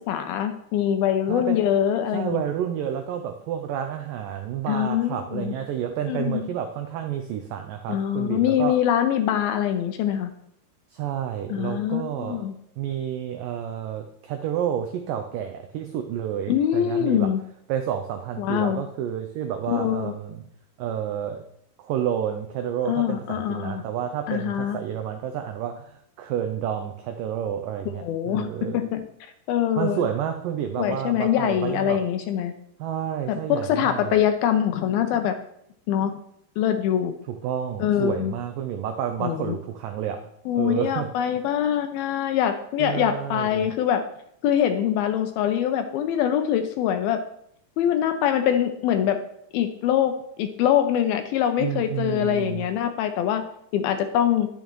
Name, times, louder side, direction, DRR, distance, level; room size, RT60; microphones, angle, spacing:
voice 1, 0.1-2.4 4.7-5.5 6.1-6.5 7.9-10.3 11.5-12.5 16.5-17.4 18.4-18.8 19.7-20.1 22.9-23.8 24.3-24.8 28.0-29.0 29.5-30.1 30.8-32.5 33.3-35.4 35.9-36.1 36.6-37.1 37.8-38.3 39.2-39.6 40.5-44.1 44.4-47.2 47.8-49.2 49.5-53.4 53.7-54.5, left 10 dB, 80° left, 7 dB, 2.3 m, -24 dB
voice 2, 1.3-1.6 2.1-8.8 10.9-12.5 12.8-17.3 17.7-20.5 20.8-21.5 21.8-28.8 29.8-32.0 32.8-34.2 37.3-41.4 42.8-43.7 51.6-52.7, right 9 dB, 90° right, 5 dB, 1.9 m, -30 dB
11.0 x 7.1 x 3.1 m, 0.71 s
omnidirectional pair, 4.6 m